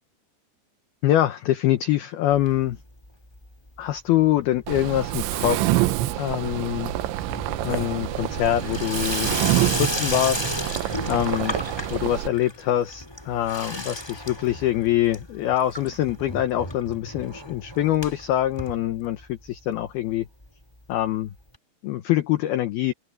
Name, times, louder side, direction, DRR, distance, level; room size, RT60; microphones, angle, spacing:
voice 1, 1.0-2.8 3.8-6.9 7.6-10.5 11.1-11.6 11.9-20.3 20.9-21.3 21.8-22.9, left 13 dB, 70° left, 2.4 m, -24 dB
Water tap faucet / Sink (filling or washing), 2.3-3.1 3.3-3.9 4.2-19.5 19.8-19.9 20.1-20.2 20.4-20.5 21.5-21.6, left 1 dB, 5° left, 2.3 m, -34 dB
Mechanisms, 4.7-12.3, right 16 dB, 80° right, 3.2 m, -26 dB
omnidirectional pair, 5.5 m